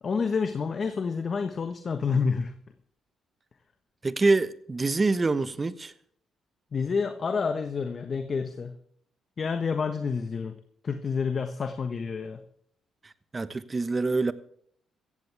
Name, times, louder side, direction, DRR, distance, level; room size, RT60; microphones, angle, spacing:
voice 1, 0.0-2.5 6.7-8.8 9.4-10.6 10.8-12.4, left 5 dB, 45° left, 1.3 m, -29 dB
voice 2, 4.0-5.9 13.3-14.3, right 3 dB, 25° right, 1.1 m, -25 dB
16.5 x 15.0 x 3.5 m
cardioid pair, 90°, 0 cm